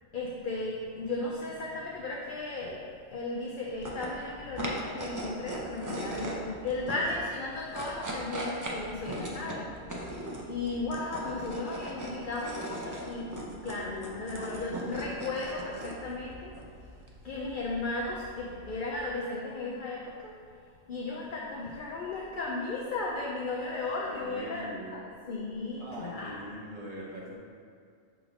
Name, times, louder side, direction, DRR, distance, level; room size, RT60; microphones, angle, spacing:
voice 1, 0.1-2.8 3.1-16.5 17.2-20.3 20.9-26.4, left 2 dB, 55° left, -3 dB, 0.6 m, -35 dB
sound 1, 3.7-19.1, right 1 dB, 30° right, 0.3 m, -40 dB
voice 2, 24.0-25.1 25.8-27.4, right 1 dB, 80° right, -4 dB, 1.5 m, -42 dB
6.2 x 3.2 x 5.0 m, 2.3 s
omnidirectional pair, 1.3 m